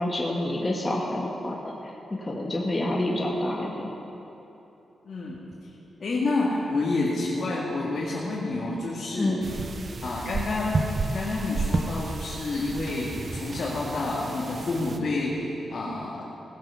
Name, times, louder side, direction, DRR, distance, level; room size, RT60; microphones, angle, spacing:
voice 1, 0.0-1.7 2.1-3.9 9.1-9.5, left 1 dB, 25° left, -3 dB, 1.8 m, -28 dB
voice 2, 5.0-5.4 5.6-5.7 6.0-9.4 10.0-10.8 11.1-16.2, left 2 dB, 60° left, -6 dB, 2.2 m, -29 dB
sound 1, 9.4-15.0, right 3 dB, 50° right, 0.8 m, -31 dB
18.0 x 7.9 x 5.7 m, 3.0 s
cardioid pair, 60°, 0 cm